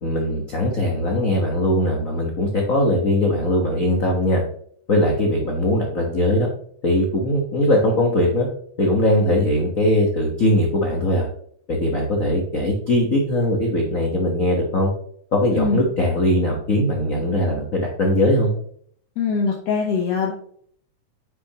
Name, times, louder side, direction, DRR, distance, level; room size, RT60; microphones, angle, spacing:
voice 1, 0.0-4.4 4.9-6.5 6.8-8.5 8.8-11.3 11.7-14.9 15.3-18.5, left 1 dB, 85° left, 0 dB, 0.7 m, -20 dB
voice 2, 15.6-15.9 19.2-20.3, left 5 dB, 65° left, 0 dB, 1.9 m, -22 dB
9.2 x 6.2 x 2.9 m, 0.62 s
omnidirectional pair, 3.4 m